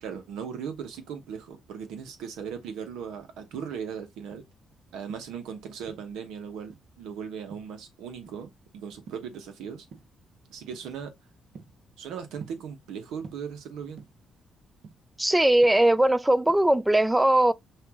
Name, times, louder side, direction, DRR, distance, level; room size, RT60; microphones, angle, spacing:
voice 1, 0.0-4.5 4.9-9.9 10.5-11.1 12.0-14.0, right 7 dB, 90° right, 1.1 m, -38 dB
sound 1, 3.3-4.6 5.0-6.3 6.7-7.1 7.5-8.6 8.9-9.5 9.9-10.2 10.7-10.9 11.3-12.9 13.2-14.4 14.7-16.2 16.5-16.8, right 5 dB, 65° right, 1.2 m, -49 dB
voice 2, 15.2-17.5, right 1 dB, 10° right, 0.3 m, -20 dB
5.8 x 2.6 x 3.0 m
cardioid pair, 90°, 0 cm